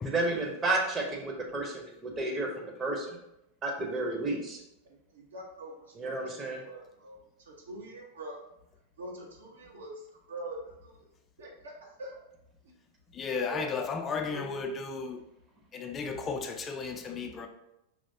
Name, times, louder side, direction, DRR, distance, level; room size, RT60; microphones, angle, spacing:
voice 1, 0.0-3.2 3.6-4.6 6.0-6.6, right 2 dB, 20° right, 1 dB, 0.9 m, -32 dB
voice 2, 4.8-8.4 9.0-11.1 11.4-11.7 12.0-12.2 13.3-13.9 14.3-14.8, right 1 dB, 65° right, -2 dB, 1.1 m, -44 dB
voice 3, 13.1-15.2 15.7-17.5, left 5 dB, 25° left, 5 dB, 0.5 m, -34 dB
4.9 x 3.1 x 2.7 m, 0.83 s
figure-of-eight pair, 90°, 0 cm